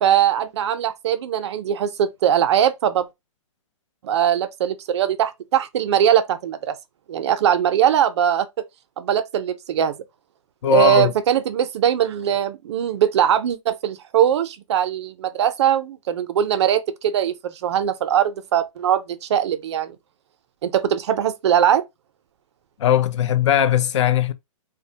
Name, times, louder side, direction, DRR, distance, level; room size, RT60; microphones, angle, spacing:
voice 1, 0.0-3.1 4.0-6.8 7.1-8.5 9.0-10.0 10.7-20.0 20.6-21.8, right 10 dB, 55° right, 0.4 m, -21 dB
voice 2, 10.6-11.1 22.8-24.3, left 10 dB, 60° left, 0.4 m, -19 dB
2.3 x 2.0 x 2.7 m
hypercardioid pair, 150°, 17 cm